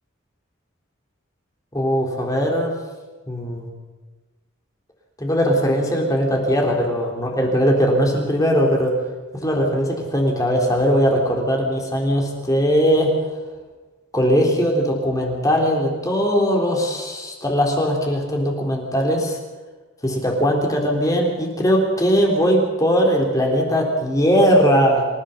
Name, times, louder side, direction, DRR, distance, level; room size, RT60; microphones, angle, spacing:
voice 1, 1.7-2.8 3.3-3.7 5.2-8.9 9.3-13.1 14.1-19.4 20.0-25.0, equal, 15° left, 0 dB, 3.8 m, -19 dB
27.0 x 16.0 x 6.8 m, 1.3 s
head